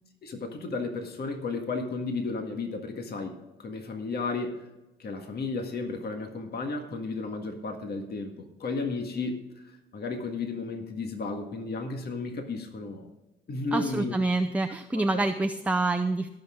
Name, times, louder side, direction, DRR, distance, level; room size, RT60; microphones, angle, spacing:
voice 1, 0.2-4.7 5.0-13.1 13.5-14.2, left 3 dB, 55° left, 4 dB, 1.8 m, -33 dB
voice 2, 13.7-16.3, right 2 dB, 5° right, 6 dB, 0.6 m, -27 dB
18.0 x 6.6 x 3.7 m, 0.99 s
cardioid pair, 90°, 20 cm